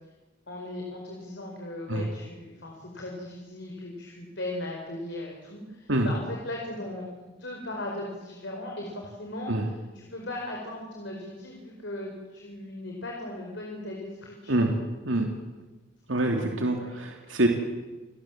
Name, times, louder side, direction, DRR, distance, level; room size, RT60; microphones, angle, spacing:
voice 1, 0.5-14.7 16.4-16.9, left 1 dB, 70° left, -1 dB, 4.9 m, -38 dB
voice 2, 16.1-17.5, right 1 dB, 90° right, 3 dB, 2.8 m, -25 dB
28.5 x 19.0 x 7.5 m, 1.1 s
head